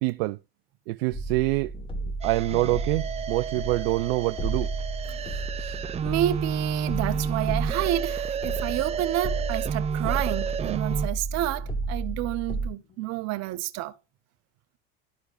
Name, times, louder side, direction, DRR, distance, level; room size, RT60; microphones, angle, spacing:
voice 1, 0.0-0.4 0.9-1.7 2.2-4.7, right 20 dB, 75° right, 0.5 m, -25 dB
sound 1, 1.1-12.7, right 3 dB, 15° left, 1.6 m, -32 dB
sound 2, 1.7-3.5 4.0-4.6 5.0-8.2 8.6-10.1 10.4-10.7 11.3-12.5 12.8-13.1, left 6 dB, 35° left, 2.0 m, -49 dB
sound 3, 2.2-11.1, right 7 dB, 20° right, 0.4 m, -32 dB
voice 2, 5.2-13.9, right 14 dB, 60° right, 1.1 m, -30 dB
13.0 x 4.6 x 2.6 m
supercardioid pair, 95°, 30 cm